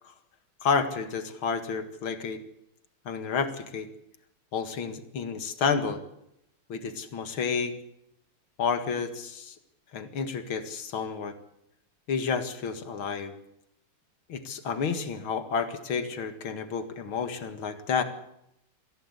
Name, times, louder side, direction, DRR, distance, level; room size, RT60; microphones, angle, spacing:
voice 1, 0.6-2.4 3.1-3.9 4.5-6.0 6.7-7.8 8.6-9.6 9.9-11.3 12.1-13.3 14.3-18.0, left 5 dB, 70° left, 9 dB, 2.7 m, -30 dB
23.5 x 16.0 x 8.2 m, 0.79 s
omnidirectional pair, 2.4 m